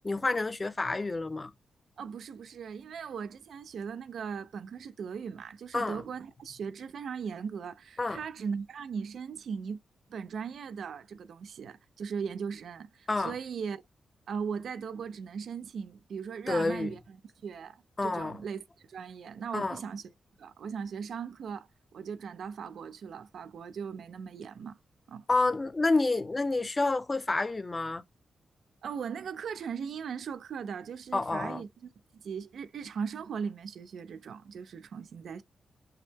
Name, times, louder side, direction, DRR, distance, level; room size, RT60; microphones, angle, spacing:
voice 1, 0.0-1.5 5.7-6.0 8.0-8.2 13.1-13.3 16.5-16.9 18.0-18.4 19.5-19.8 25.3-28.0 31.1-31.6, left 3 dB, 25° left, 0.5 m, -29 dB
voice 2, 2.0-9.8 10.1-13.8 14.3-17.2 17.4-18.6 18.9-20.1 20.4-24.8 25.1-25.2 28.8-35.4, right 6 dB, 75° right, 0.5 m, -38 dB
5.6 x 2.1 x 3.4 m
wide cardioid pair, 120°, 0 cm